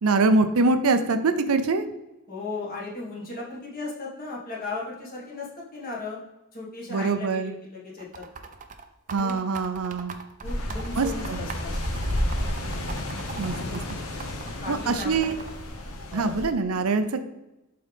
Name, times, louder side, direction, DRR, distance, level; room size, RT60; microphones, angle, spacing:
voice 1, 0.0-1.9 6.9-7.5 9.1-10.1 10.9-11.4 13.4-13.8 14.7-15.3 16.1-17.2, right 3 dB, 75° right, 9 dB, 0.6 m, -24 dB
voice 2, 2.3-6.2 6.5-8.2 9.1-9.3 10.4-11.7 13.5-13.8 14.6-15.3 16.1-16.4, left 3 dB, 40° left, -5 dB, 1.9 m, -36 dB
sound 1, 8.0-14.5 15.0-15.7, right 5 dB, 35° right, 0.6 m, -40 dB
sound 2, 10.4-16.5, left 1 dB, 70° left, 1.1 m, -31 dB
11.5 x 3.9 x 3.5 m, 0.98 s
head